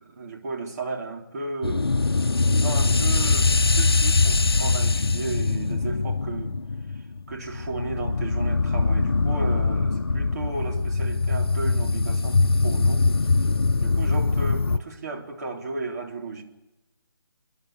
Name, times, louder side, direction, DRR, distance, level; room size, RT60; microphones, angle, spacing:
voice 1, 0.2-1.9 2.5-6.6 6.9-13.5 13.8-16.4, right 3 dB, 45° right, 1 dB, 3.6 m, -34 dB
sound 1, 1.6-14.8, left 3 dB, 75° left, 0.7 m, -22 dB
30.0 x 11.0 x 8.6 m, 1.0 s
figure-of-eight pair, 150°, 13 cm